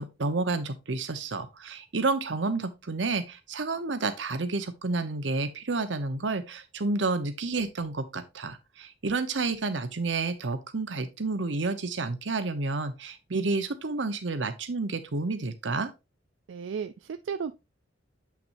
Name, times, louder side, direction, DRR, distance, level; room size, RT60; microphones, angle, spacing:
voice 1, 0.0-15.9, right 3 dB, 75° right, 0.9 m, -30 dB
voice 2, 16.5-17.5, right 6 dB, 90° right, 0.4 m, -34 dB
7.8 x 5.9 x 2.6 m
head